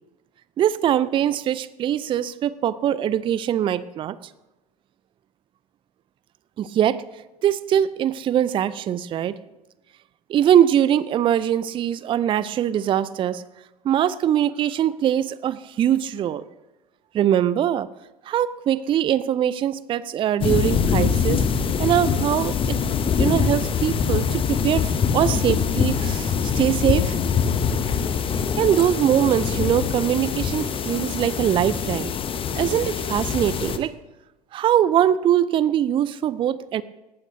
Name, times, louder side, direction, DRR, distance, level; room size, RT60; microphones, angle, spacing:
voice 1, 0.6-4.2 6.6-7.0 7.4-9.3 10.3-13.4 13.8-16.4 17.1-17.9 18.3-21.4 21.8-22.8 23.2-27.2 28.6-32.1 32.5-33.9 34.5-36.8, right 10 dB, 25° right, 18 dB, 0.5 m, -22 dB
sound 1, 20.4-33.8, left 6 dB, 25° left, 0.9 m, -24 dB
19.0 x 15.0 x 2.7 m, 1.1 s
figure-of-eight pair, 75°, 20 cm